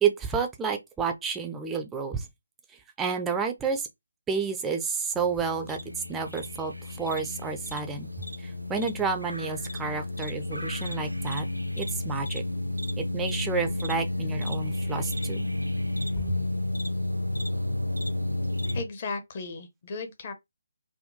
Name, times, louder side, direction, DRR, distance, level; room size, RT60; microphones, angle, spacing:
voice 1, 0.0-2.3 3.0-3.9 4.3-5.8 6.1-8.1 8.4-11.5 11.8-12.4 13.0-15.5 16.2-16.4, right 5 dB, 10° right, 0.4 m, -30 dB
sound 1, 5.1-18.8, left 1 dB, 85° right, 0.5 m, -31 dB
voice 2, 18.7-20.3, left 4 dB, 35° left, 0.7 m, -35 dB
3.6 x 2.2 x 2.6 m
figure-of-eight pair, 145°, 0 cm